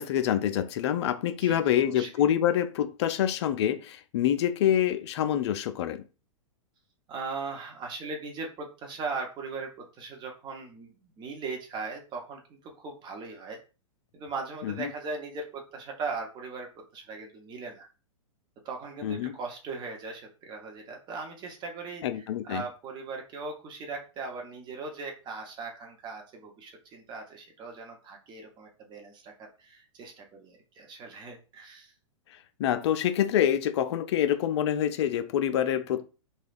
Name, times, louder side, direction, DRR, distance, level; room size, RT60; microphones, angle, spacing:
voice 1, 0.0-6.0 14.6-14.9 19.0-19.3 22.0-22.6 32.6-36.1, left 10 dB, 55° left, 0.4 m, -26 dB
voice 2, 1.4-2.1 7.1-13.6 14.1-17.9 18.6-31.9, right 4 dB, 25° right, 0.9 m, -39 dB
3.3 x 2.3 x 2.5 m
hypercardioid pair, 115°, 17 cm